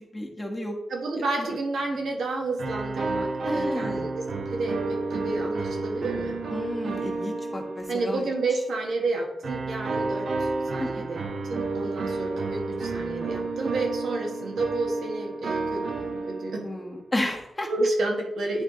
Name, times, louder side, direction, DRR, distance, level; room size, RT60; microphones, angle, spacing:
voice 1, 0.1-0.8 1.4-1.5 3.4-4.1 6.5-8.2 10.8-11.1 16.6-17.7, left 1 dB, 20° left, 0 dB, 1.3 m, -32 dB
voice 2, 0.9-6.4 7.9-16.6 17.7-18.6, right 2 dB, 85° right, 0 dB, 1.4 m, -30 dB
sound 1, 2.6-8.4 9.4-16.8, right 3 dB, 70° right, 1.0 m, -31 dB
9.6 x 3.3 x 3.8 m, 0.93 s
cardioid pair, 85°, 0 cm